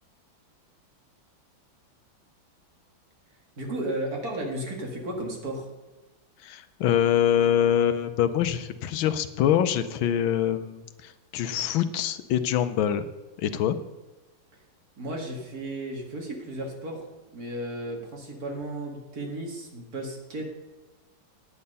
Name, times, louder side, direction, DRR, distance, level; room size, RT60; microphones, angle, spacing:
voice 1, 3.6-5.7 15.0-17.1 17.3-20.5, right 1 dB, 45° right, 0 dB, 2.5 m, -34 dB
voice 2, 6.4-13.1 13.4-13.8, left 10 dB, 80° left, 11 dB, 1.4 m, -24 dB
9.7 x 8.8 x 5.4 m, 1.2 s
omnidirectional pair, 2.2 m